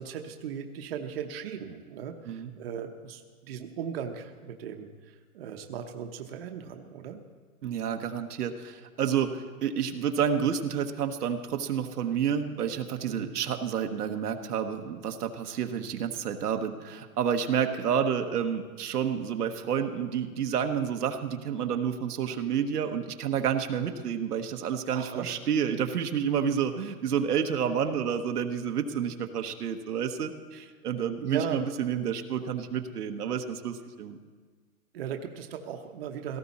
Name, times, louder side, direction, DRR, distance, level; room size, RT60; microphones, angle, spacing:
voice 1, 0.0-7.2 13.1-13.3 24.9-25.3 31.2-31.6 34.9-36.4, right 8 dB, 40° right, 5 dB, 0.9 m, -37 dB
voice 2, 7.6-34.2, right 8 dB, 90° right, 6 dB, 1.2 m, -29 dB
17.5 x 14.5 x 4.2 m, 1.5 s
hypercardioid pair, 170°, 45 cm